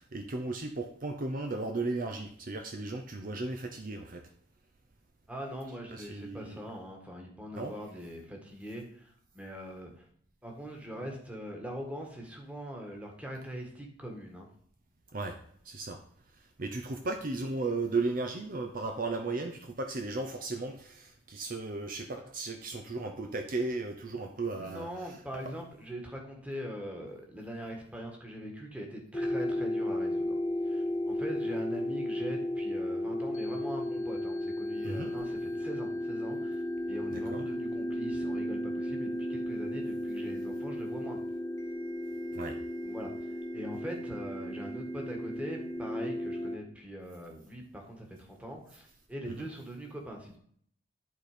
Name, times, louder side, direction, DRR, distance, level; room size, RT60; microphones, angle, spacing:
voice 1, 0.0-4.3 5.9-6.6 7.5-7.7 15.1-15.4 15.6-16.0 16.6-25.2 34.8-35.1 37.1-37.5 42.3-42.6 49.4-49.5, right 3 dB, 45° right, 5 dB, 0.7 m, -35 dB
voice 2, 5.3-10.1 10.4-14.5 24.6-30.3 30.6-41.2 42.8-50.4, equal, 5° right, 1 dB, 1.6 m, -42 dB
sound 1, 29.1-46.6, left 1 dB, 15° left, 0.7 m, -34 dB
11.0 x 4.3 x 5.0 m, 0.62 s
head